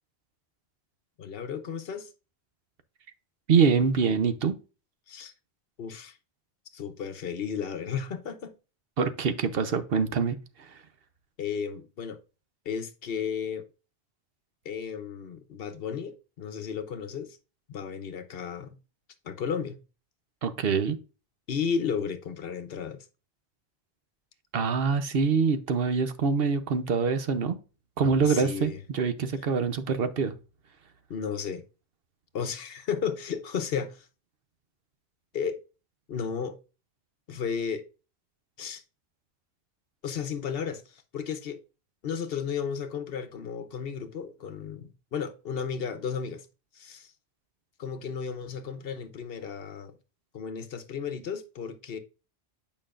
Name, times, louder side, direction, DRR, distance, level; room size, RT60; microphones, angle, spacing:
voice 1, 1.2-2.1 5.1-5.3 5.8-6.2 6.7-8.5 11.4-12.2 12.6-13.6 14.6-17.4 17.7-18.8 19.2-19.8 21.5-23.0 28.2-28.8 31.1-31.6 32.3-34.1 35.3-35.6 36.1-36.6 37.3-37.9 38.6-38.8 40.0-41.6 42.0-46.5 46.7-47.1 47.8-49.9 50.3-52.0, left 6 dB, 65° left, 0.9 m, -33 dB
voice 2, 3.5-4.5 9.0-10.7 20.4-21.0 24.5-27.6 28.0-30.3, right 5 dB, 65° right, 1.0 m, -25 dB
8.8 x 5.3 x 2.5 m
omnidirectional pair, 1.1 m